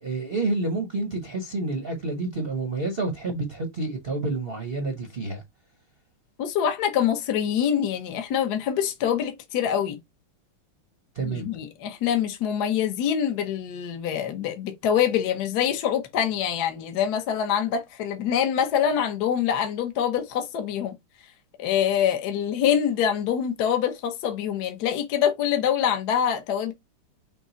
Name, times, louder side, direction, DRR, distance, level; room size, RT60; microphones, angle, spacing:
voice 1, 0.0-5.4 11.1-11.5, right 3 dB, 45° right, 0.7 m, -29 dB
voice 2, 6.4-10.0 11.2-21.0 21.6-26.7, left 9 dB, 60° left, 1.2 m, -25 dB
6.1 x 2.1 x 3.9 m
omnidirectional pair, 2.4 m